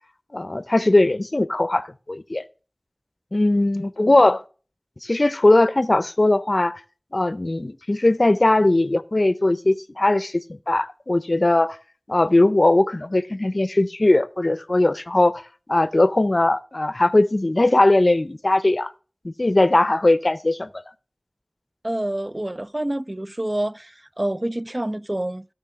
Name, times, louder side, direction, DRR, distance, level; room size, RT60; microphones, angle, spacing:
voice 1, 0.3-2.4 3.3-4.4 5.0-6.8 7.1-11.8 12.1-15.4 15.7-18.9 19.2-20.7, left 2 dB, 50° left, 0.5 m, -19 dB
voice 2, 21.8-25.5, right 1 dB, 30° right, 0.4 m, -27 dB
16.5 x 6.2 x 3.6 m
wide cardioid pair, 50°, 0 cm